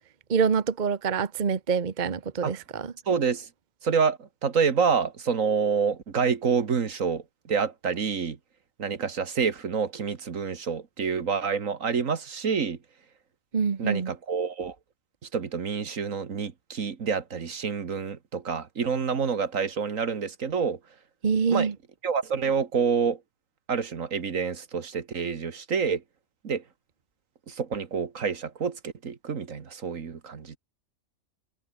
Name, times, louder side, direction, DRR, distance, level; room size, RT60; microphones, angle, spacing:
voice 1, 0.3-2.9 13.5-14.1 21.2-21.7, right 6 dB, 35° right, 1.1 m, -26 dB
voice 2, 3.1-3.5 3.8-8.4 8.8-12.8 13.8-14.8 15.3-20.8 21.5-21.7 22.0-23.2 23.7-26.0 26.4-26.6 27.5-30.6, right 6 dB, 65° right, 2.0 m, -27 dB
omnidirectional pair, 1.5 m